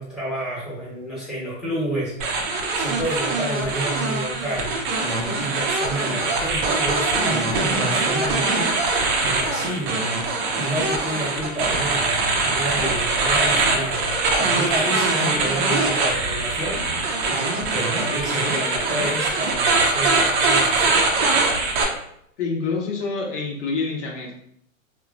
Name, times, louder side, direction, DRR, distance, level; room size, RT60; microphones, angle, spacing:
voice 1, 0.0-8.5 9.2-10.1 10.5-16.9 17.7-21.0, right 1 dB, ahead, -7 dB, 0.9 m, -29 dB
sound 1, 2.2-21.8, right 3 dB, 40° right, 0.5 m, -22 dB
voice 2, 22.4-24.3, left 4 dB, 60° left, 0 dB, 0.7 m, -27 dB
3.0 x 2.1 x 2.4 m, 0.72 s
hypercardioid pair, 120°, 41 cm